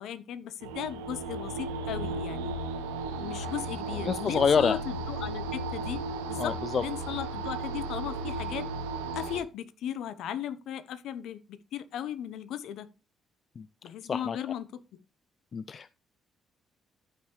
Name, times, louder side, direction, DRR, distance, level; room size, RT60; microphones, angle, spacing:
voice 1, 0.0-2.5 3.2-8.7 9.1-12.9 13.8-14.8, left 10 dB, 70° left, 0.8 m, -37 dB
sound 1, 0.6-9.4, right 2 dB, 85° right, 0.9 m, -35 dB
voice 2, 4.0-4.8 6.4-6.8 13.6-13.7 14.0-14.4 15.5-15.9, left 6 dB, 50° left, 0.4 m, -27 dB
14.0 x 5.5 x 3.1 m
hypercardioid pair, 45°, 0 cm